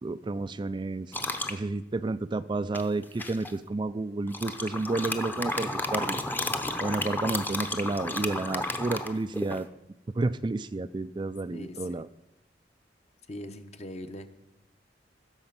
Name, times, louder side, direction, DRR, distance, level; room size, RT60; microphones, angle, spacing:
voice 1, 0.0-1.1 1.5-6.2 6.8-9.7 10.1-12.1, right 3 dB, 25° right, 12 dB, 0.3 m, -31 dB
sound 1, 1.1-1.6 2.7-3.5 4.3-9.6, left 1 dB, 10° left, 0.8 m, -32 dB
voice 2, 11.5-12.0 13.3-14.3, left 1 dB, 40° left, 8 dB, 0.9 m, -41 dB
15.5 x 6.9 x 5.8 m, 0.87 s
head